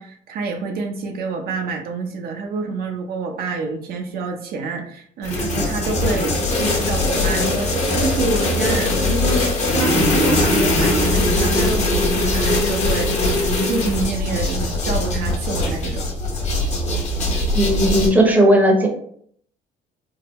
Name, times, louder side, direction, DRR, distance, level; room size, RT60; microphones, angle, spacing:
voice 1, 0.0-13.1 13.6-16.1, right 3 dB, 65° right, 3 dB, 0.5 m, -27 dB
sound 1, 5.2-18.1, left 1 dB, 40° left, 0.9 m, -20 dB
voice 2, 17.5-18.9, right 1 dB, 10° right, 1 dB, 0.7 m, -15 dB
3.5 x 2.2 x 2.9 m, 0.64 s
cardioid pair, 110°, 17 cm